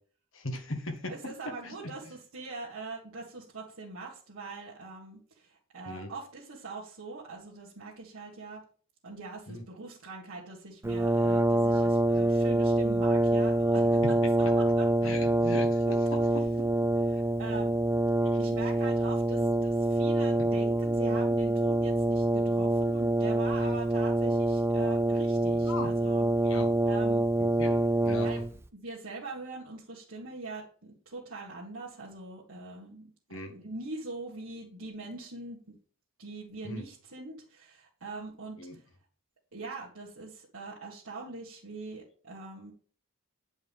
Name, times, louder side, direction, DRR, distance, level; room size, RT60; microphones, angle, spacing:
voice 1, 0.3-1.1 1.6-1.9 5.8-6.1 9.5-9.6 14.0-14.5 15.0-16.9 20.4-20.5 23.6-23.7 25.6-25.9 26.4-26.7 27.4-28.3 33.3-33.5 36.6-36.8 38.6-38.8, left 1 dB, 65° left, 4 dB, 1.6 m, -39 dB
voice 2, 1.1-8.6 9.0-15.1 17.1-17.7 18.4-26.3 26.9-27.3 28.2-28.4 28.7-33.1 33.4-35.7 36.2-38.8 39.5-42.7, right 3 dB, 80° right, -7 dB, 1.8 m, -42 dB
Brass instrument, 10.8-28.6, right 1 dB, 10° right, 0.4 m, -26 dB
8.9 x 5.2 x 3.6 m, 0.43 s
head